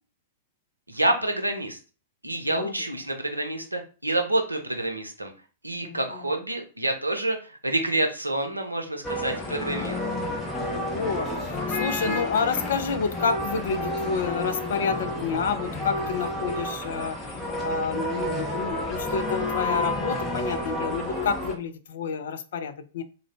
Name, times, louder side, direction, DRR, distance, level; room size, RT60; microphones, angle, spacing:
voice 1, 0.9-1.8 2.2-5.3 5.6-10.1, right 1 dB, 85° right, 5 dB, 0.6 m, -28 dB
voice 2, 2.5-2.8 5.8-6.0 10.7-17.2 17.6-23.0, left 6 dB, 60° left, 9 dB, 0.4 m, -29 dB
sound 1, 9.0-21.6, left 1 dB, 15° left, 0.8 m, -30 dB
3.6 x 2.2 x 3.3 m, 0.35 s
figure-of-eight pair, 100°, 0 cm